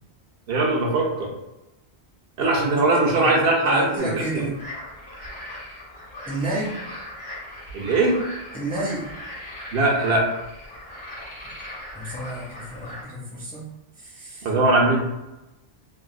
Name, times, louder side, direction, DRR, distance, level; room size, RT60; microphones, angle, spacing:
voice 1, 0.5-1.3 2.4-4.4 7.7-8.2 9.7-10.2 14.4-15.0, right 2 dB, 70° right, -2 dB, 0.9 m, -20 dB
voice 2, 2.5-4.6 6.3-6.8 8.5-9.1 11.9-13.7 14.0-14.5, right 1 dB, 10° left, -5 dB, 0.5 m, -31 dB
sound 1, 4.0-13.0, left 1 dB, 70° left, 1.4 m, -39 dB
3.4 x 2.2 x 2.2 m, 0.96 s
omnidirectional pair, 1.1 m